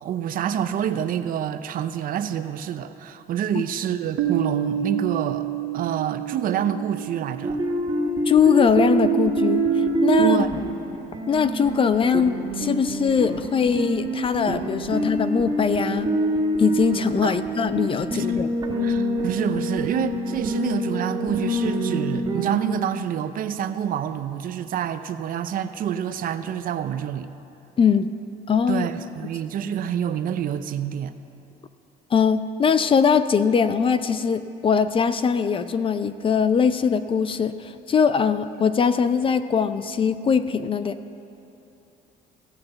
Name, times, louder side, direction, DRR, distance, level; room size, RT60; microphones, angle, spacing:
voice 1, 0.0-5.5 5.7-7.6 10.2-10.6 17.2-17.4 18.1-18.4 18.8-27.3 28.7-31.1, right 9 dB, 55° right, 11 dB, 0.6 m, -27 dB
Piano, 4.2-9.5, right 10 dB, 90° right, 0.9 m, -30 dB
sound 1, 7.4-22.6, right 2 dB, 25° right, 1.9 m, -25 dB
voice 2, 8.3-10.5 11.3-16.1 16.6-18.5 27.8-28.1 28.5-28.9 32.1-40.9, left 6 dB, 30° left, 12 dB, 0.4 m, -21 dB
16.0 x 5.7 x 7.9 m, 3.0 s
cardioid pair, 110°, 17 cm